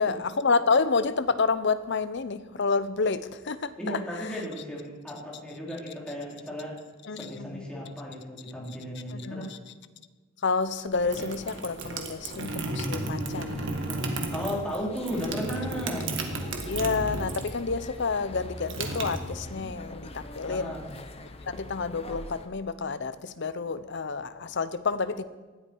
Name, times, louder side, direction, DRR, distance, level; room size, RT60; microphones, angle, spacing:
voice 1, 0.0-4.4 7.0-7.7 9.1-9.6 10.4-13.6 13.9-14.6 16.7-20.7 21.5-25.2, left 4 dB, 60° left, 13 dB, 0.8 m, -29 dB
voice 2, 3.8-6.8 7.1-9.5 14.3-16.1 19.6-19.7 20.5-20.9, equal, 5° left, -5 dB, 4.0 m, -35 dB
sound 1, 10.9-22.5, left 1 dB, 30° left, 1.2 m, -43 dB
sound 2, 10.9-17.6 17.9-19.8, right 2 dB, 65° right, 1.8 m, -33 dB
19.0 x 13.0 x 4.7 m, 1.3 s
head